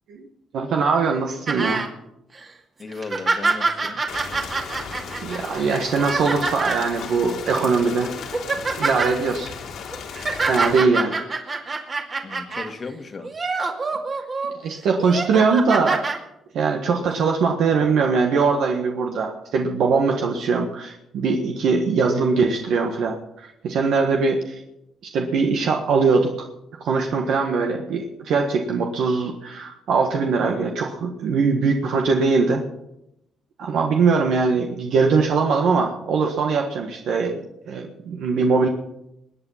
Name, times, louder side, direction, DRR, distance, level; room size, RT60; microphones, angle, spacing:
voice 1, 0.5-1.8 5.2-8.1 8.8-9.5 10.5-11.1 14.6-16.1 16.5-24.6 25.1-26.5 26.8-32.6 33.6-38.7, right 4 dB, 75° right, 2 dB, 1.5 m, -21 dB
sound 1, 1.5-1.9 2.4-2.5 2.9-6.9 7.6-7.8 8.2-9.1 9.9-12.7 13.2-14.5 15.0-16.2 17.1-17.2, right 3 dB, 40° right, 2.3 m, -26 dB
voice 2, 2.8-4.0 12.2-13.3, left 4 dB, 40° left, 8 dB, 1.6 m, -36 dB
Rain, 4.1-10.8, left 6 dB, 75° left, 2.5 m, -35 dB
21.5 x 8.6 x 5.8 m, 0.85 s
cardioid pair, 90°, 0 cm